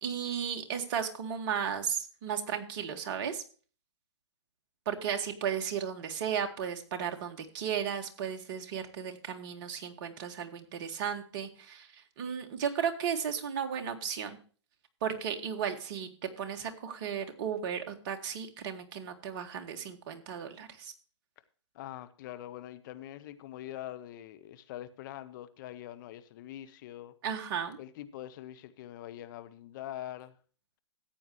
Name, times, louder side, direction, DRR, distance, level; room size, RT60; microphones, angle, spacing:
voice 1, 0.0-3.4 4.9-14.4 15.0-16.1 16.4-20.9 27.2-27.8, right 8 dB, 45° right, 5 dB, 2.0 m, -35 dB
voice 2, 21.7-27.1 27.8-30.4, left 13 dB, 40° left, 12 dB, 1.1 m, -44 dB
14.5 x 9.2 x 3.2 m, 0.39 s
hypercardioid pair, 135°, 15 cm